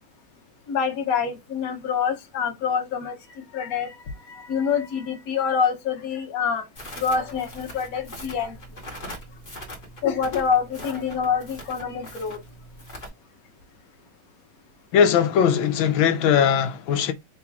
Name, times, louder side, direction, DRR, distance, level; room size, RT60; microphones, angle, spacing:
voice 1, 0.7-3.9 4.2-6.7 7.0-8.5 10.0-12.4, left 6 dB, 55° left, 1.2 m, -26 dB
Crackle, 6.8-13.1, equal, 30° left, 1.5 m, -41 dB
voice 2, 14.9-17.1, left 8 dB, 80° left, 1.4 m, -19 dB
4.1 x 2.9 x 3.5 m
omnidirectional pair, 2.2 m